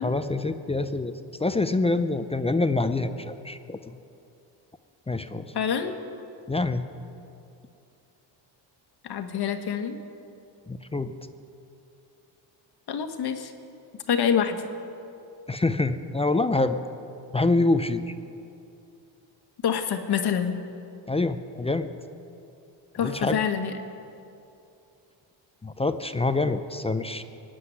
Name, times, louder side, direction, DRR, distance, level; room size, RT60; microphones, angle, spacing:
voice 1, 0.0-3.8 5.1-5.5 6.5-6.9 10.7-11.1 15.5-16.8 17.3-18.0 21.1-21.9 23.0-23.4 25.6-27.2, left 2 dB, 15° left, 10 dB, 0.5 m, -26 dB
voice 2, 5.5-5.9 9.0-10.0 12.9-13.5 14.1-14.6 19.6-20.6 22.9-23.7, left 7 dB, 55° left, 7 dB, 1.5 m, -26 dB
17.5 x 7.7 x 9.9 m, 2.7 s
cardioid pair, 95°, 45 cm